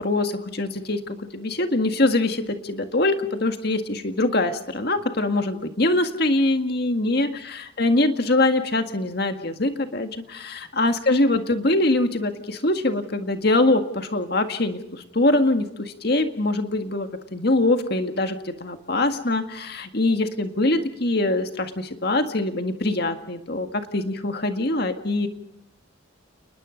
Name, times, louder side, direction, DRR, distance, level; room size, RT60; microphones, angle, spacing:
voice 1, 0.0-25.3, left 2 dB, 50° left, 7 dB, 1.9 m, -23 dB
30.0 x 20.5 x 5.2 m, 0.78 s
head